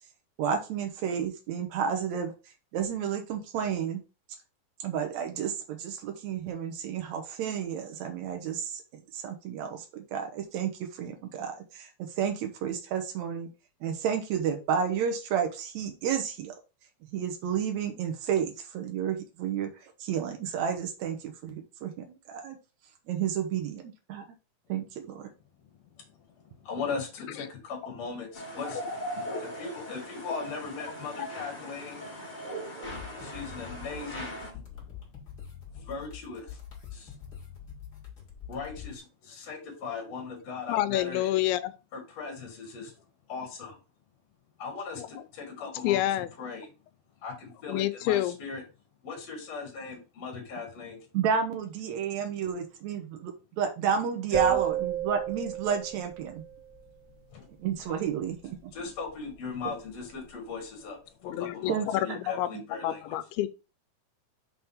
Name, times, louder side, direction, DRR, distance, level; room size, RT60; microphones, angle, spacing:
voice 1, 0.4-2.3 2.7-4.0 4.8-13.5 13.8-16.6 17.1-22.6 23.1-23.8 24.1-24.2 24.7-25.3 51.1-56.4 57.6-58.7 59.6-59.7 61.7-62.2 62.5-62.6, right 7 dB, 85° right, 1.6 m, -31 dB
voice 2, 25.9-28.8 29.1-32.1 33.2-34.6 35.7-36.6 36.9-37.2 38.5-41.3 41.9-42.9 43.3-43.8 44.6-46.7 47.2-48.6 49.0-51.0 54.3-54.6 57.3-57.5 58.7-63.2, left 4 dB, 55° left, 2.3 m, -39 dB
sound 1, 28.3-34.5, equal, 70° left, 0.4 m, -39 dB
sound 2, 32.8-38.9, left 8 dB, 35° left, 1.8 m, -45 dB
voice 3, 40.7-41.7 45.0-45.1 45.6-46.3 47.7-48.4 61.2-63.5, left 14 dB, 90° left, 2.5 m, -29 dB
sound 3, 54.3-56.6, right 10 dB, 10° right, 0.6 m, -31 dB
6.2 x 3.5 x 5.5 m
omnidirectional pair, 4.4 m